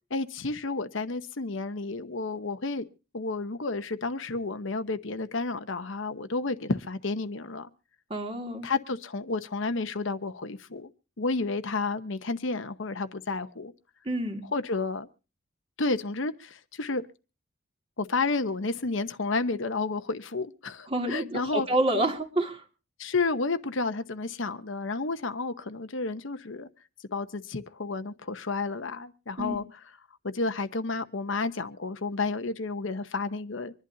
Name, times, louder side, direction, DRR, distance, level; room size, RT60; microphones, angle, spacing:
voice 1, 0.1-2.8 3.1-7.7 8.6-10.9 11.2-13.7 14.5-15.1 15.8-17.0 18.0-21.7 21.9-22.0 23.0-26.7 27.1-29.6 30.2-33.7, left 3 dB, 65° left, 0.9 m, -31 dB
voice 2, 8.1-8.7 14.1-14.4 20.9-22.6 29.4-29.6, right 1 dB, 25° right, 2.2 m, -28 dB
25.5 x 11.5 x 2.7 m
head